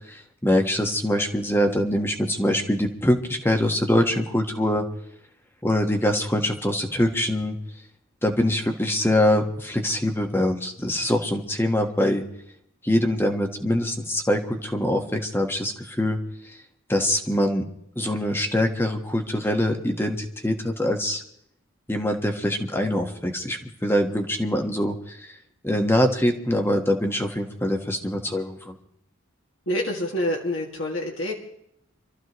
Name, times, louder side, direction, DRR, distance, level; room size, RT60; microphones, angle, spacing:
voice 1, 0.1-4.8 5.6-7.5 8.2-12.2 12.8-16.2 16.4-16.6 16.9-17.6 17.9-21.2 21.9-25.4 25.6-28.8, left 1 dB, 10° left, 4 dB, 1.4 m, -24 dB
voice 2, 29.7-31.4, left 1 dB, 65° left, -2 dB, 2.2 m, -27 dB
27.0 x 14.0 x 3.1 m, 0.72 s
head